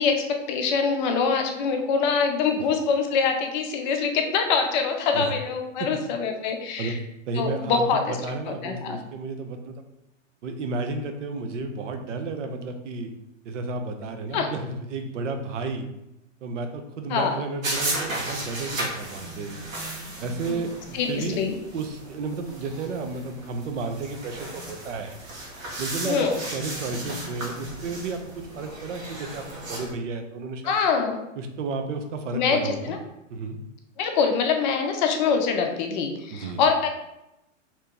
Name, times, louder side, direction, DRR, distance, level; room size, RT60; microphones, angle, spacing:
voice 1, 0.0-7.0 7.4-8.2 8.5-9.0 14.3-14.5 17.1-17.4 20.5-20.6 20.9-21.5 26.1-26.4 30.6-31.2 32.3-33.0 34.0-36.9, left 5 dB, 40° left, 4 dB, 0.5 m, -24 dB
voice 2, 7.3-9.7 10.4-13.1 13.4-15.9 16.4-19.6 20.2-21.4 21.7-25.2 25.8-30.6 31.4-33.0 33.3-33.6 36.3-36.7, right 3 dB, 70° right, 6 dB, 0.7 m, -32 dB
sound 1, 17.6-29.9, right 1 dB, 85° right, 1.2 m, -35 dB
2.9 x 2.7 x 3.5 m, 0.89 s
hypercardioid pair, 110°, 39 cm